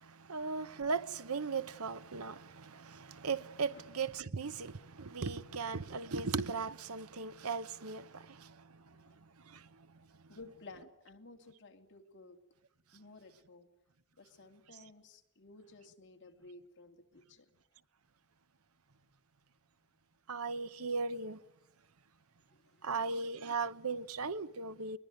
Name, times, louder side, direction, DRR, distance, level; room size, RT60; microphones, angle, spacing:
voice 1, 0.0-8.8 9.4-9.7 20.3-21.4 22.8-25.0, right 4 dB, 80° right, 0.9 m, -37 dB
voice 2, 10.3-12.4 12.9-13.7 14.2-17.4 22.5-22.9, left 3 dB, 55° left, 2.6 m, -55 dB
22.0 x 21.0 x 9.4 m
head